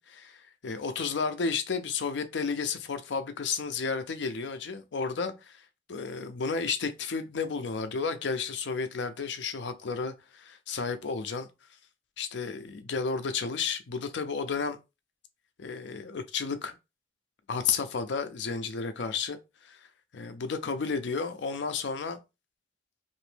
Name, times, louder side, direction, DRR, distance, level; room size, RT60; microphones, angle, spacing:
voice 1, 0.0-5.6 5.9-11.5 12.2-14.8 15.6-16.8 17.5-19.4 19.6-19.8 20.1-22.2, left 5 dB, 75° left, 0.5 m, -32 dB
2.9 x 2.6 x 3.2 m
head